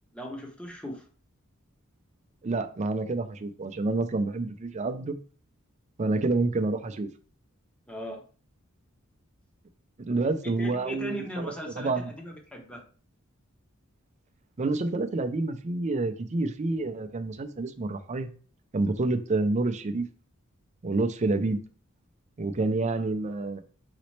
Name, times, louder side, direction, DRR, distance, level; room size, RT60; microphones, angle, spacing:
voice 1, 0.1-1.0 7.9-8.2 10.4-12.8, equal, 5° left, 1 dB, 0.9 m, -38 dB
voice 2, 2.4-5.2 6.0-7.1 10.1-12.1 14.6-18.3 18.7-20.1 20.8-21.6 22.4-23.6, right 3 dB, 35° right, 7 dB, 0.5 m, -28 dB
4.1 x 4.0 x 3.2 m, 0.40 s
head